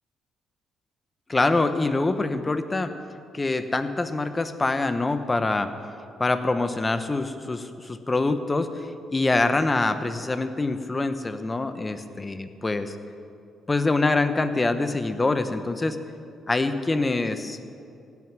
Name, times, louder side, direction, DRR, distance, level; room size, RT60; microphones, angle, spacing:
voice 1, 1.3-2.9 3.3-5.7 6.2-13.0 13.7-16.0 16.5-17.6, left 3 dB, 25° left, 10 dB, 1.0 m, -25 dB
16.5 x 9.6 x 6.2 m, 2.5 s
cardioid pair, 90°, 0 cm